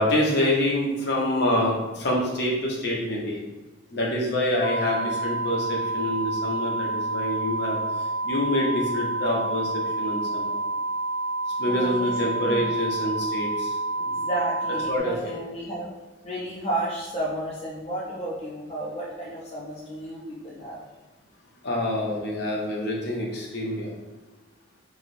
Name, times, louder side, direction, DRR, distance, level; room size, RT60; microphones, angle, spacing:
voice 1, 0.0-3.4 3.9-7.8 8.2-10.6 11.6-14.3 14.9-15.1 21.6-23.9, left 1 dB, 60° left, -3 dB, 0.7 m, -26 dB
sound 1, 4.6-15.0, right 2 dB, 45° right, 0.4 m, -29 dB
voice 2, 11.7-12.1 12.4-12.7 14.0-15.9 16.2-20.8, right 1 dB, 30° left, -6 dB, 0.5 m, -32 dB
2.9 x 2.9 x 2.5 m, 1.1 s
head